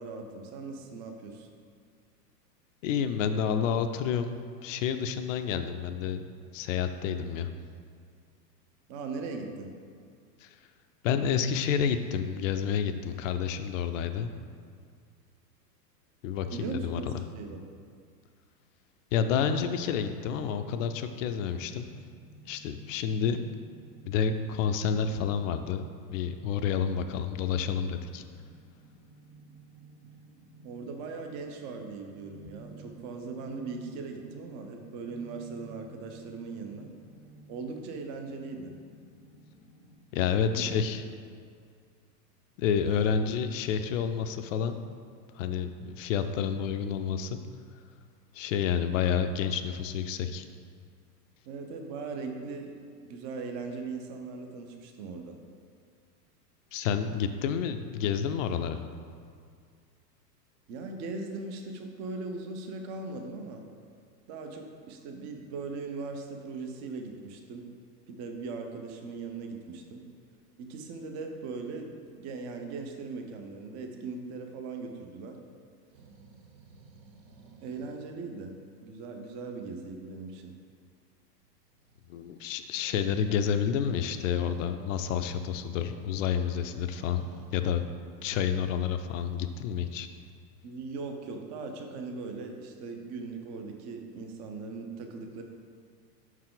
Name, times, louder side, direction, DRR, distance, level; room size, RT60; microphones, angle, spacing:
voice 1, 0.0-1.5 8.9-9.7 16.5-17.7 30.6-36.9 37.5-38.7 40.3-40.6 41.0-41.2 42.8-43.1 51.5-52.7 53.0-55.4 60.7-63.6 64.3-67.7 68.1-70.0 70.6-75.4 77.6-78.5 78.8-80.5 90.6-95.4, right 4 dB, 35° right, 4 dB, 0.7 m, -39 dB
voice 2, 2.8-4.3 4.6-6.3 6.5-7.5 10.4-10.5 11.0-14.3 16.2-17.0 19.1-21.9 22.4-23.4 24.1-25.8 26.1-28.2 40.1-41.0 42.6-44.8 45.3-47.4 48.3-50.4 56.7-58.8 82.1-87.2 87.5-87.8 88.2-90.1, left 7 dB, 55° left, 9 dB, 0.5 m, -29 dB
sound 1, 20.1-40.0, right 2 dB, 50° right, 1.5 m, -54 dB
sound 2, 75.9-78.1 81.4-87.5, right 3 dB, 85° right, 0.9 m, -56 dB
5.7 x 4.6 x 3.8 m, 2.2 s
hypercardioid pair, 115°, 50 cm